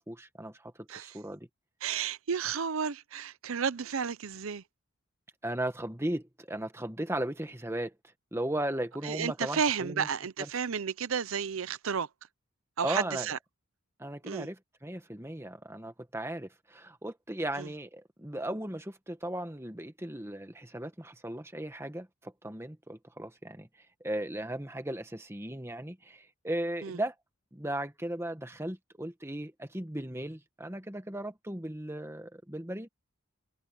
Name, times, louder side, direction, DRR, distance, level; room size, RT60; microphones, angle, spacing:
voice 1, 0.0-1.5 5.4-7.9 8.3-10.1 10.4-10.5 12.8-13.3 14.0-27.1 27.5-32.9, right 1 dB, 10° right, 1.4 m, -36 dB
voice 2, 1.8-4.6 9.0-12.1 12.8-13.4 14.2-14.5 17.6-17.7 26.8-27.0, right 6 dB, 70° right, 0.7 m, -32 dB
head